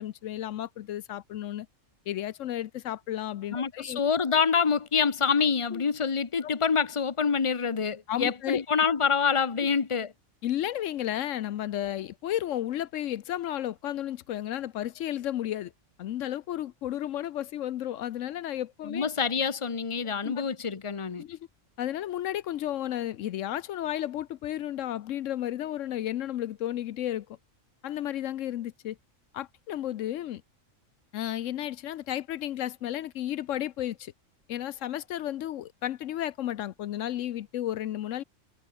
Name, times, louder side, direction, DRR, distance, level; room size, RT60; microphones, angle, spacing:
voice 1, 0.0-1.7 2.1-4.0 5.7-5.8 6.4-6.5 8.1-8.6 10.4-15.7 16.0-19.1 20.2-20.4 21.2-21.4 21.8-27.4 27.8-29.0 29.3-30.4 31.1-34.1 34.5-38.2, left 12 dB, 80° left, 1.0 m, -33 dB
voice 2, 3.5-10.1 18.8-21.2, left 6 dB, 25° left, 1.0 m, -26 dB
omnidirectional pair, 1.3 m